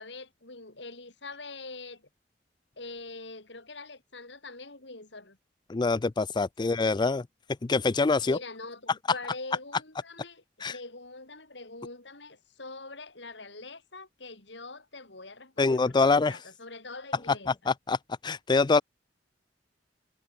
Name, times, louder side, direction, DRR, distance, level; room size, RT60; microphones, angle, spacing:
voice 1, 0.0-2.1 2.8-5.4 6.6-6.8 8.2-17.7, left 3 dB, 70° left, 5.2 m, -44 dB
voice 2, 5.7-7.2 7.7-8.4 10.6-10.7 15.6-16.4 17.7-18.0 18.2-18.8, left 3 dB, 25° left, 0.4 m, -24 dB
head